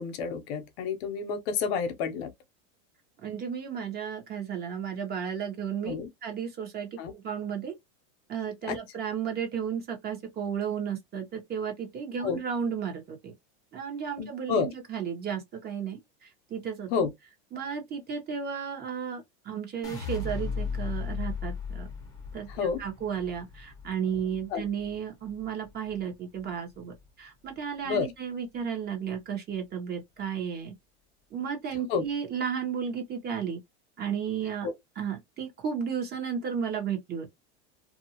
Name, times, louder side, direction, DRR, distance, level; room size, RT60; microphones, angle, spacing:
voice 1, 0.0-2.3 5.8-6.1 7.0-7.1 8.7-8.8 12.2-12.4 14.2-14.7 16.9-17.1 22.6-22.8 24.5-24.6 27.8-28.1 31.9-32.0 34.6-34.7, left 5 dB, 60° left, 0.8 m, -29 dB
voice 2, 3.2-5.9 6.2-7.7 8.3-13.3 13.7-16.9 17.5-21.9 22.3-22.5 22.8-30.7 31.3-33.6 34.0-34.7 35.0-37.3, right 7 dB, 25° right, 0.9 m, -33 dB
sound 1, 19.8-26.0 26.4-27.0, left 4 dB, 10° left, 0.8 m, -36 dB
2.5 x 2.3 x 2.8 m
supercardioid pair, 140°, 35 cm